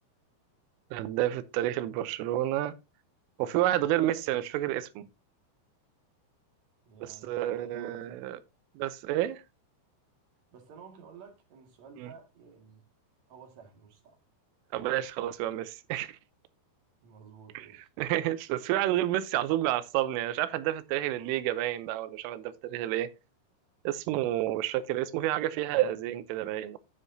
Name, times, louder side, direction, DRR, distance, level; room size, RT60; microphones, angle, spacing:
voice 1, 0.9-2.7 3.4-5.1 7.0-8.4 8.8-9.4 12.0-12.1 14.7-16.2 17.5-17.7 18.0-23.1 23.8-26.8, right 14 dB, 90° right, 3.4 m, -30 dB
voice 2, 6.9-8.3 10.5-12.8 13.3-14.2 17.0-17.9, right 6 dB, 50° right, 2.6 m, -52 dB
9.6 x 9.6 x 2.7 m
omnidirectional pair, 5.6 m